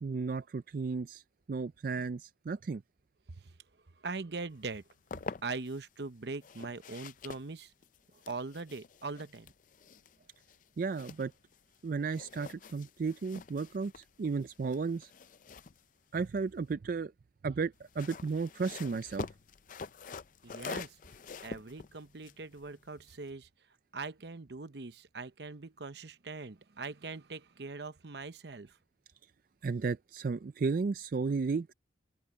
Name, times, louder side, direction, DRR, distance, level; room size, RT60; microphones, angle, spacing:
voice 1, 0.0-1.2 1.5-2.8 10.8-11.3 11.8-15.1 16.1-17.1 17.4-19.3 29.6-31.7, right 4 dB, 50° right, 0.4 m, -34 dB
voice 2, 4.0-4.8 5.4-7.7 8.3-9.5 20.4-21.0 21.4-23.5 23.9-28.8, right 3 dB, 65° right, 0.9 m, -41 dB
sound 1, 4.7-5.8 6.4-11.8 12.1-16.7 17.7-23.3, left 4 dB, 45° left, 0.5 m, -47 dB
open air
head